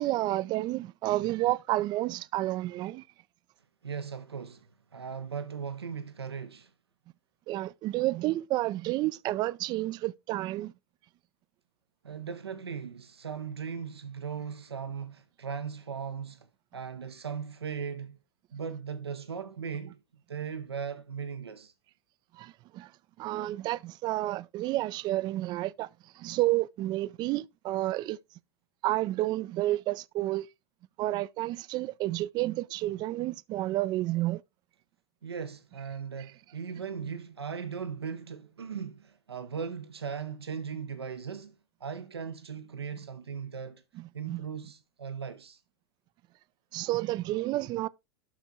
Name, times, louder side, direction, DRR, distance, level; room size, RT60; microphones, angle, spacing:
voice 1, 0.0-3.0 7.5-10.7 22.3-22.9 23.2-25.9 26.2-28.2 28.8-30.5 31.0-34.4 44.0-44.4 46.7-47.9, right 16 dB, 35° right, 0.4 m, -30 dB
voice 2, 3.8-6.7 12.0-16.5 16.7-18.2 18.5-20.0 20.3-21.7 35.2-41.5 41.8-43.8 44.1-45.6, right 6 dB, 80° right, 0.8 m, -38 dB
12.0 x 4.5 x 3.7 m
figure-of-eight pair, 90°, 13 cm